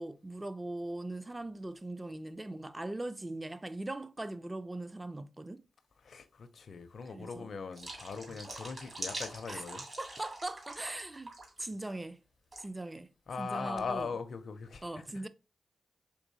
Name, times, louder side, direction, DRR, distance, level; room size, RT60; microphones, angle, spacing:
voice 1, 0.0-5.6 7.1-7.5 9.5-9.6 10.0-12.2 12.6-13.1 13.4-14.1 14.8-15.3, right 2 dB, 20° right, 0.4 m, -40 dB
voice 2, 6.0-9.9 13.3-15.3, left 5 dB, 65° left, 0.5 m, -40 dB
sound 1, 7.7-11.0 11.3-11.6 12.5-12.7, right 2 dB, 45° right, 1.8 m, -44 dB
3.8 x 3.0 x 2.6 m
cardioid pair, 60°, 0 cm